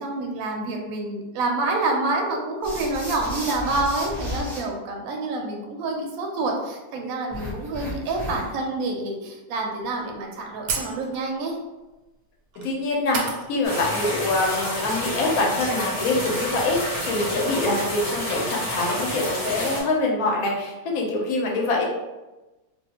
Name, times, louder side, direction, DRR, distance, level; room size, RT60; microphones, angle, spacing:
voice 1, 0.0-11.6, right 2 dB, 70° right, 1 dB, 0.9 m, -27 dB
sound 1, 2.6-4.6 7.3-8.6, left 1 dB, ahead, 0.4 m, -33 dB
sound 2, 10.0-10.1 10.7-11.4 12.5-12.7 13.1-13.8 14.1-14.2 15.2-15.3 15.5-16.9, right 4 dB, 85° right, 1.2 m, -33 dB
voice 2, 12.6-13.2 13.5-21.8, left 2 dB, 65° left, -1 dB, 1.0 m, -24 dB
sound 3, 13.6-19.8, equal, 35° left, 0.8 m, -29 dB
2.6 x 2.2 x 2.8 m, 1.1 s
omnidirectional pair, 1.8 m